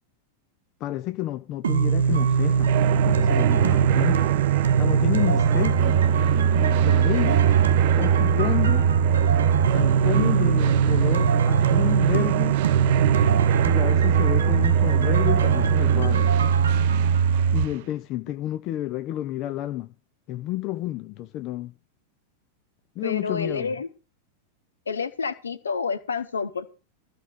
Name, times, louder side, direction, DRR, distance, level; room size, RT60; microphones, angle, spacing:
voice 1, 0.8-2.7 3.0-4.3 4.8-6.0 6.5-7.5 8.0-8.9 9.7-12.6 13.6-16.3 17.5-19.9 20.3-21.7 23.0-23.8, left 15 dB, 40° left, 0.7 m, -30 dB
sound 1, 1.6-17.7, right 6 dB, 65° right, 0.9 m, -21 dB
sound 2, 2.1-17.8, right 16 dB, 50° right, 0.5 m, -26 dB
voice 2, 23.0-23.9 24.9-26.7, left 5 dB, 70° left, 1.1 m, -29 dB
14.5 x 4.9 x 8.8 m
figure-of-eight pair, 90°, 0 cm